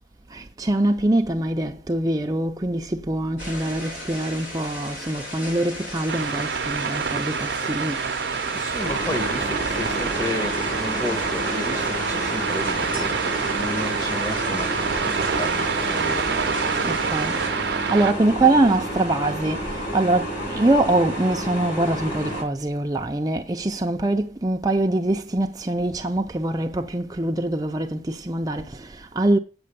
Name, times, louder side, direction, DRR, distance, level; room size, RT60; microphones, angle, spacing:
voice 1, 0.3-8.1 13.8-14.0 16.8-29.4, right 2 dB, 20° right, 0.5 m, -24 dB
sound 1, 3.4-17.5, equal, 85° left, 4.4 m, -36 dB
sound 2, 6.1-18.1, right 6 dB, 65° right, 0.6 m, -27 dB
voice 2, 8.5-13.2 13.5-16.3, left 1 dB, 20° left, 1.3 m, -33 dB
sound 3, 8.8-22.4, equal, 45° left, 7.1 m, -30 dB
8.6 x 6.1 x 6.7 m
head